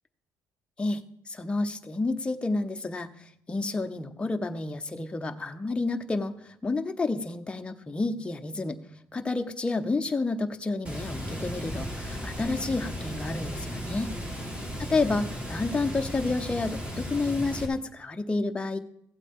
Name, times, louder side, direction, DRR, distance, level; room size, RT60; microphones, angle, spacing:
voice 1, 0.8-8.8 9.1-14.1 14.8-18.8, left 3 dB, 15° left, 6 dB, 0.8 m, -30 dB
Water, 10.8-17.6, equal, 15° right, 2.2 m, -35 dB
15.5 x 8.2 x 3.6 m, 0.74 s
cardioid pair, 120°, 7 cm